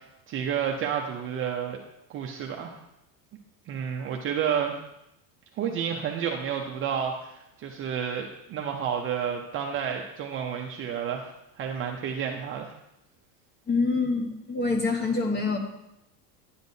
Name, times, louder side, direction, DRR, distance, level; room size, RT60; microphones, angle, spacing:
voice 1, 0.0-1.8 2.1-2.8 3.7-4.7 5.6-11.3 11.6-12.7, right 8 dB, 30° right, 1 dB, 0.5 m, -30 dB
voice 2, 13.7-15.6, left 3 dB, 20° left, 3 dB, 1.0 m, -26 dB
10.5 x 8.0 x 2.7 m, 0.84 s
supercardioid pair, 150°, 46 cm